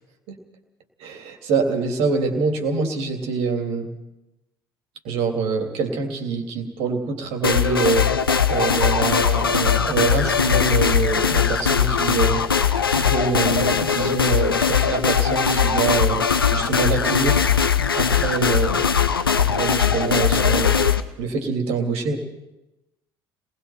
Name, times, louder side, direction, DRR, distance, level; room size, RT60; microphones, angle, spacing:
voice 1, 1.0-3.9 5.0-8.1 8.5-12.5 12.9-16.2 16.5-17.4 17.9-18.9 19.4-20.8 21.2-22.2, right 4 dB, 55° right, 4 dB, 3.2 m, -25 dB
sound 1, 7.4-21.0, left 7 dB, 85° left, 0.7 m, -20 dB
30.0 x 20.0 x 4.5 m, 0.95 s
figure-of-eight pair, 55°, 12 cm